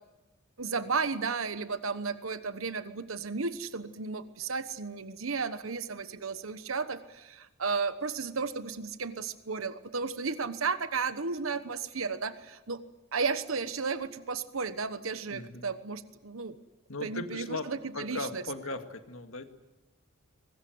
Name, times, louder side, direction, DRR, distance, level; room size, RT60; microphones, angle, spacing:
voice 1, 0.6-12.8 13.1-16.6 17.0-18.4, right 4 dB, 90° right, 12 dB, 1.2 m, -34 dB
voice 2, 15.3-15.7 16.9-19.5, left 2 dB, 85° left, 7 dB, 2.0 m, -38 dB
23.0 x 20.0 x 9.5 m, 1.0 s
head